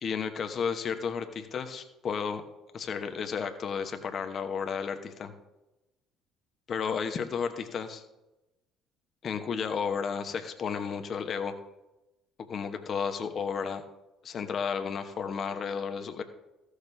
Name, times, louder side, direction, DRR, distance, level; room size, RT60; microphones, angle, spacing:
voice 1, 0.0-2.4 2.7-5.3 6.7-8.0 9.2-11.5 12.5-13.8 14.2-16.2, left 6 dB, 45° left, 7 dB, 1.0 m, -32 dB
14.5 x 6.5 x 3.4 m, 0.97 s
hypercardioid pair, 60°, 0 cm